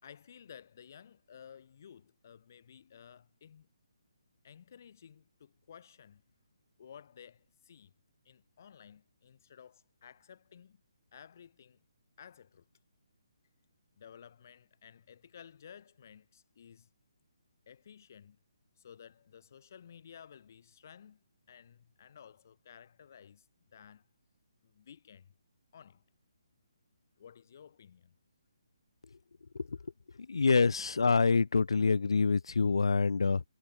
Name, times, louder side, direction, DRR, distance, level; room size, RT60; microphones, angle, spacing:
voice 1, 0.0-3.7 4.4-6.2 6.8-7.9 8.2-10.8 11.1-11.8 12.2-12.6 14.0-16.9 17.7-18.4 18.8-21.2 21.5-24.1 24.6-25.3 25.7-26.0 27.2-28.1, left 8 dB, 35° left, 3.9 m, -55 dB
voice 2, 30.3-33.4, left 4 dB, 80° left, 0.6 m, -26 dB
hypercardioid pair, 175°, 3 cm